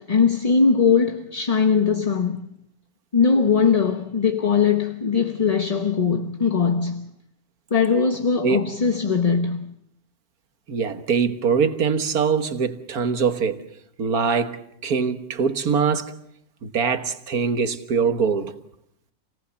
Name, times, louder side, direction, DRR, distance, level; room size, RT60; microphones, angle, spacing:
voice 1, 0.0-2.4 3.1-7.1 7.7-9.7, left 5 dB, 30° left, 1.0 m, -20 dB
voice 2, 10.7-13.6 14.0-16.1 16.6-18.5, right 6 dB, 85° right, 1.9 m, -23 dB
27.5 x 18.5 x 7.1 m
omnidirectional pair, 1.5 m